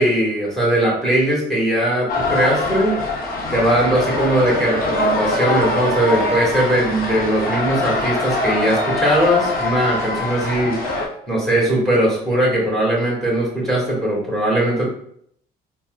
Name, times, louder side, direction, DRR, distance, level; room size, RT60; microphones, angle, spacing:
voice 1, 0.0-2.9 3.5-10.8 11.3-14.8, right 1 dB, ahead, -4 dB, 1.4 m, -19 dB
sound 1, 2.1-11.1, left 2 dB, 60° left, 0.7 m, -23 dB
4.2 x 2.1 x 2.3 m, 0.67 s
cardioid pair, 110°, 17 cm